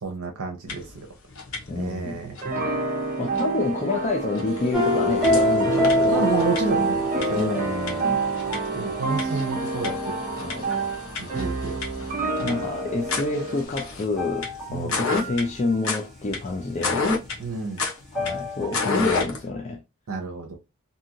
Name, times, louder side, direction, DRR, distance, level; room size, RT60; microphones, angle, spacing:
voice 1, 0.0-0.9 1.7-2.4 6.1-7.0 7.3-7.6 8.1-8.3 8.8-10.1 11.2-11.8 12.4-12.7 14.7-15.0 17.4-17.8 20.1-20.6, right 4 dB, 70° right, 0.7 m, -30 dB
sound 1, 0.7-1.0 1.3-1.9 2.3-2.4 3.3-3.4 4.0-4.1 4.3-19.5, left 4 dB, 70° left, 1.0 m, -32 dB
voice 2, 1.7-2.2 3.2-6.3 7.3-8.2 10.4-10.7 12.4-17.1 18.1-19.8, left 3 dB, 30° left, 0.4 m, -28 dB
sound 2, 2.4-13.6, right 3 dB, 40° right, 0.7 m, -29 dB
sound 3, 4.7-11.0 14.2-14.7 15.1-15.3 18.1-18.8 19.1-19.2, equal, ahead, 1.1 m, -26 dB
2.7 x 2.5 x 2.7 m
head